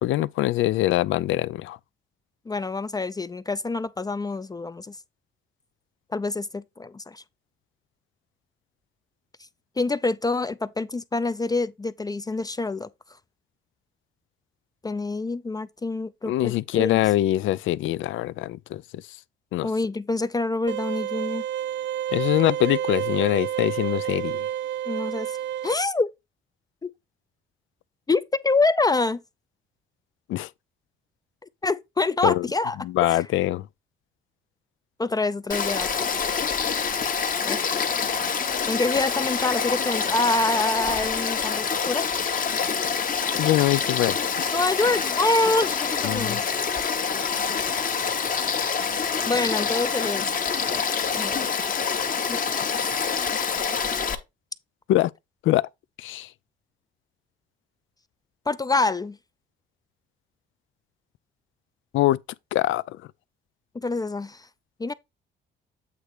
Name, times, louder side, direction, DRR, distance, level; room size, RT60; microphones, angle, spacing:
voice 1, 0.0-1.8 16.3-18.8 19.5-19.7 22.1-24.5 30.3-30.5 32.2-32.5 32.8-33.7 43.4-44.2 46.0-46.4 54.9-55.1 55.4-55.6 56.0-56.3 61.9-62.2 62.5-62.8, left 15 dB, 80° left, 0.4 m, -23 dB
voice 2, 2.5-5.0 6.1-7.2 9.8-12.9 14.8-17.0 19.6-21.4 24.9-25.4 25.6-26.1 26.8-26.9 28.1-29.2 31.6-32.8 33.1-33.2 35.0-36.1 37.4-37.6 38.7-42.0 44.5-46.4 49.2-50.3 50.7-51.5 52.3-52.6 58.5-59.2 63.7-64.5 64.8-64.9, left 3 dB, 20° left, 0.4 m, -26 dB
sound 1, 20.7-25.7, right 11 dB, 65° right, 0.4 m, -29 dB
Frog / Stream, 35.5-54.1, left 6 dB, 45° left, 1.2 m, -26 dB
8.2 x 3.1 x 4.9 m
cardioid pair, 90°, 20 cm